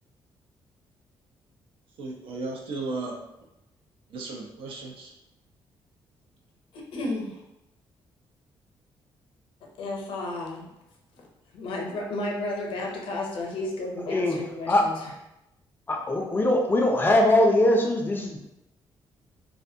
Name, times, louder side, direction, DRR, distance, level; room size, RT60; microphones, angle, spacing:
voice 1, 2.0-3.1 4.1-5.1, right 3 dB, 80° right, 0 dB, 0.6 m, -35 dB
voice 2, 6.7-7.4 9.8-10.7 11.2-11.3 11.5-15.0, left 2 dB, 75° left, 0 dB, 0.6 m, -32 dB
voice 3, 14.1-14.9 15.9-18.4, left 1 dB, 20° left, 1 dB, 0.4 m, -22 dB
2.5 x 2.2 x 2.6 m, 0.91 s
cardioid pair, 110°, 9 cm